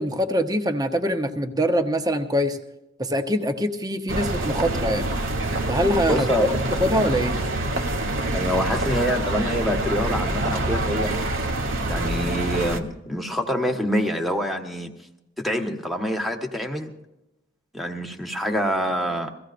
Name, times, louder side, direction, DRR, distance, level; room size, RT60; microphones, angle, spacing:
voice 1, 0.0-2.6 3.0-5.1 5.7-6.3 6.8-7.4, equal, 20° right, 6 dB, 0.9 m, -23 dB
sound 1, 4.1-12.8, right 2 dB, 75° right, 1.2 m, -26 dB
voice 2, 6.1-6.5 8.3-11.1 11.9-14.9 15.4-16.9 17.7-19.3, equal, ahead, 4 dB, 1.3 m, -26 dB
23.0 x 15.5 x 2.5 m, 0.93 s
head